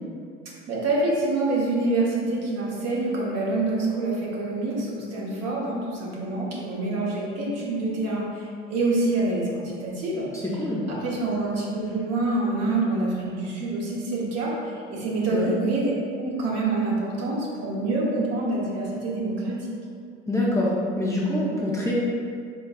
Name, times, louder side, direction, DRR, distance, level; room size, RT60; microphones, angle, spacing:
voice 1, 0.7-10.3 10.9-19.6, right 2 dB, 50° right, -4 dB, 1.2 m, -26 dB
voice 2, 10.4-10.8 15.3-15.5 20.3-21.9, left 1 dB, 10° left, -6 dB, 0.7 m, -25 dB
4.5 x 3.2 x 2.4 m, 2.3 s
hypercardioid pair, 75°, 33 cm